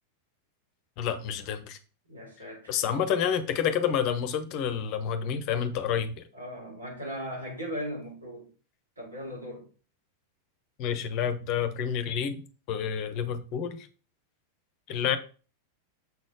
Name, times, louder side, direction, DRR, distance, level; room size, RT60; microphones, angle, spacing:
voice 1, 1.0-1.8 2.7-6.3 10.8-12.4 12.7-13.9 14.9-15.2, left 8 dB, 40° left, 0.9 m, -29 dB
voice 2, 2.1-2.9 6.3-8.5 9.0-9.7, equal, 80° right, 4.0 m, -38 dB
7.0 x 4.2 x 4.7 m
figure-of-eight pair, 90°, 0 cm